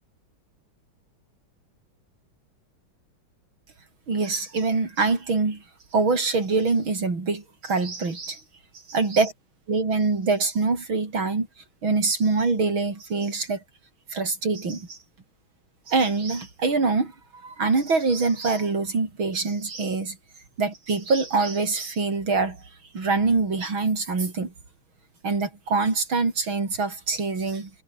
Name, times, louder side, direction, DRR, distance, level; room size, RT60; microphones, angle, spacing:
voice 1, 4.1-5.6 5.9-8.4 8.9-9.3 9.7-11.5 11.8-13.6 14.1-15.0 15.9-17.1 17.4-20.2 20.6-22.6 22.9-24.5 25.2-27.7, right 4 dB, 80° right, 5.2 m, -24 dB
omnidirectional pair, 2.2 m